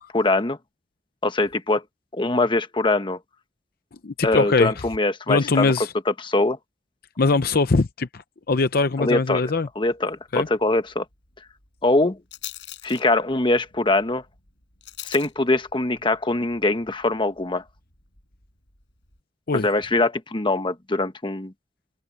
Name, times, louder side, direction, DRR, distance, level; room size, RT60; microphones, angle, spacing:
voice 1, 0.1-0.6 1.2-1.8 2.1-3.2 4.2-5.7 6.1-6.6 9.0-9.4 9.8-11.0 11.8-12.2 12.8-14.2 15.0-17.6 19.6-21.5, left 2 dB, 30° left, 1.2 m, -22 dB
voice 2, 4.0-4.7 5.3-5.9 7.2-9.7 10.3-10.5 19.5-19.7, left 3 dB, 55° left, 0.7 m, -22 dB
Rattle, 9.3-19.2, left 13 dB, 80° left, 7.3 m, -46 dB
head